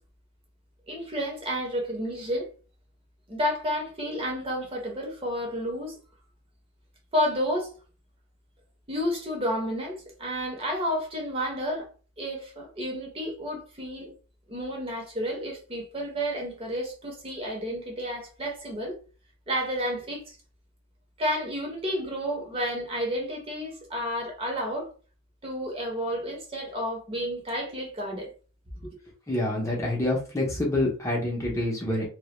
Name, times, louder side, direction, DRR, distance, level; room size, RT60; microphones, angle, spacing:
voice 1, 0.9-2.5 3.3-5.9 7.1-7.7 8.9-11.9 12.2-14.1 14.5-19.0 19.5-20.4 21.2-24.9 25.4-28.3 28.8-28.9, equal, 25° right, 0.7 m, -31 dB
voice 2, 29.3-32.1, left 1 dB, 15° left, 0.5 m, -27 dB
2.1 x 2.1 x 2.9 m
head